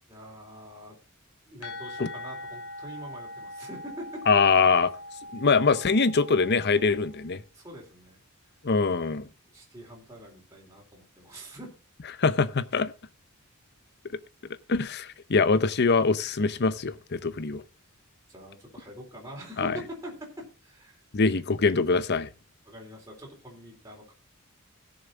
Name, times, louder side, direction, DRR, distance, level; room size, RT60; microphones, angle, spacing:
voice 1, 0.1-1.0 1.5-4.2 7.5-8.2 9.5-11.7 17.8-17.9 18.3-21.0 22.6-24.1, equal, 15° right, 3.8 m, -44 dB
sound 1, 1.6-7.2, left 1 dB, 70° left, 3.1 m, -42 dB
voice 2, 4.3-4.9 5.3-7.4 8.6-9.3 12.2-12.9 14.7-17.6 19.6-19.7 21.1-22.3, left 4 dB, 50° left, 0.7 m, -23 dB
16.0 x 7.1 x 4.0 m
head